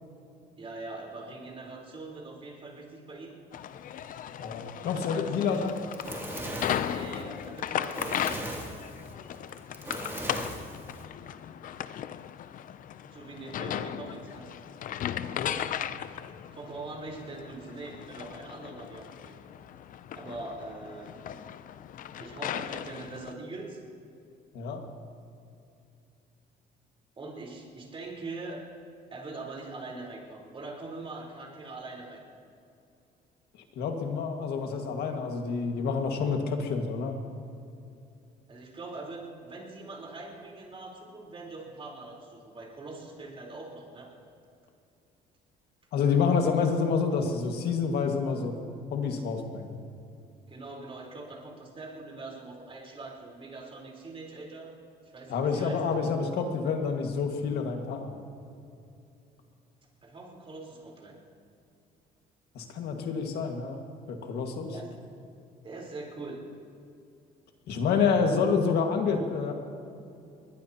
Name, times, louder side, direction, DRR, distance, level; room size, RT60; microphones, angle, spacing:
voice 1, 0.6-3.3 4.8-5.6 6.8-8.7 13.0-14.5 16.5-19.3 20.1-21.4 22.2-23.8 27.2-28.6 29.1-32.2 38.5-44.1 50.5-54.7 55.0-55.8 60.0-61.2 64.7-64.9 65.6-66.4, right 3 dB, 35° right, -2 dB, 4.0 m, -42 dB
sound 1, 3.5-23.3, left 10 dB, 55° left, 0.5 m, -37 dB
voice 2, 4.4-5.8 15.2-15.6 24.5-24.8 33.8-37.2 45.9-48.6 48.9-49.7 55.3-58.1 62.6-63.8 64.1-64.7 67.7-69.5, left 5 dB, 70° left, 4 dB, 1.8 m, -28 dB
Fire, 5.5-11.0, right 1 dB, 15° right, 2.7 m, -38 dB
21.5 x 20.0 x 2.9 m, 2.6 s
cardioid pair, 110°, 17 cm